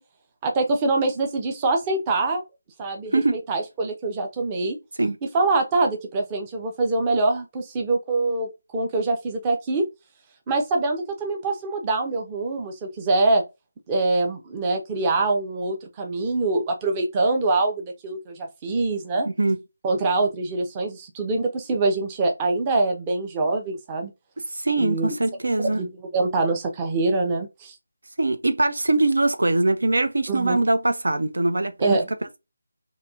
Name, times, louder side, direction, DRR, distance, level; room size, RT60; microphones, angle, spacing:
voice 1, 0.4-2.4 2.8-4.8 5.2-9.9 10.5-13.4 13.9-19.3 19.8-24.1 24.8-25.1 25.7-27.8 30.3-30.6 31.8-32.1, right 3 dB, 15° right, 0.5 m, -24 dB
voice 2, 19.3-19.6 24.6-25.8 28.2-32.0, right 2 dB, 80° right, 0.4 m, -22 dB
2.8 x 2.6 x 2.3 m
figure-of-eight pair, 165°, 0 cm